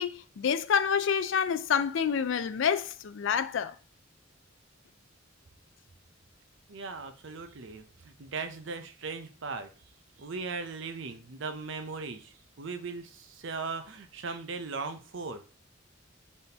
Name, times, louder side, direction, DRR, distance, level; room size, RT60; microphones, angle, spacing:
voice 1, 0.0-3.7, left 7 dB, 65° left, 0.4 m, -28 dB
voice 2, 6.7-9.7 10.2-15.4, right 4 dB, 65° right, 0.6 m, -38 dB
4.0 x 3.5 x 2.8 m
head